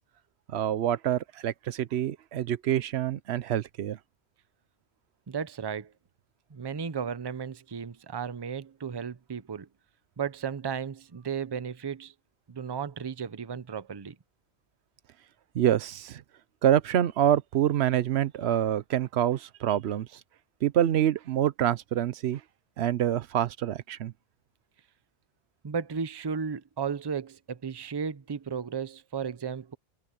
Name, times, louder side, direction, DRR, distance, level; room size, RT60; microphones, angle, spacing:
voice 1, 0.5-4.0 15.5-16.2 16.6-20.1 20.6-22.4 22.8-24.1, right 11 dB, 90° right, 0.9 m, -26 dB
voice 2, 5.3-5.9 6.5-9.7 10.2-12.1 12.5-14.2 25.6-29.8, right 6 dB, 30° right, 0.6 m, -34 dB
omnidirectional pair, 1.1 m